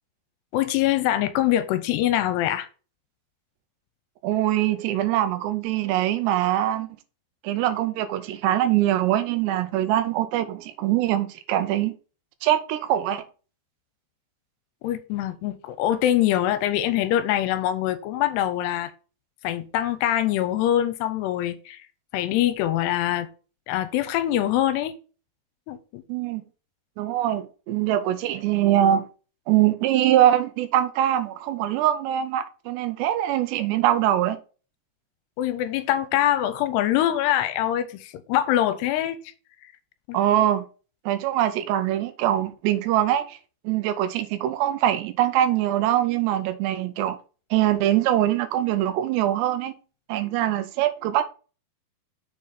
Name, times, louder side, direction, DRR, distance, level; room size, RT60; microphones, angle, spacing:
voice 1, 0.5-2.7 14.8-18.9 19.4-21.9 22.1-23.3 23.7-25.0 25.7-26.0 35.4-39.3 40.1-40.2, left 12 dB, 85° left, 2.6 m, -24 dB
voice 2, 4.2-6.9 7.4-11.9 12.4-13.2 26.1-26.4 27.0-29.1 29.5-34.4 40.1-40.7 41.1-43.4 43.6-47.2 47.5-49.7 50.1-51.3, right 12 dB, 90° right, 2.9 m, -23 dB
6.8 x 5.1 x 4.1 m
omnidirectional pair, 4.9 m